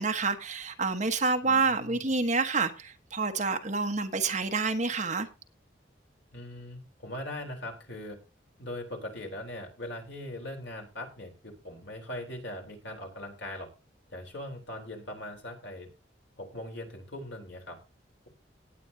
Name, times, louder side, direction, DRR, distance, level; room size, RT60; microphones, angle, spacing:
voice 1, 0.0-5.3, right 4 dB, 40° right, 1.3 m, -28 dB
voice 2, 1.4-2.1 6.3-8.2 8.6-13.7 14.1-15.9 16.4-17.8, left 1 dB, 75° left, 3.8 m, -40 dB
18.5 x 8.7 x 2.8 m
head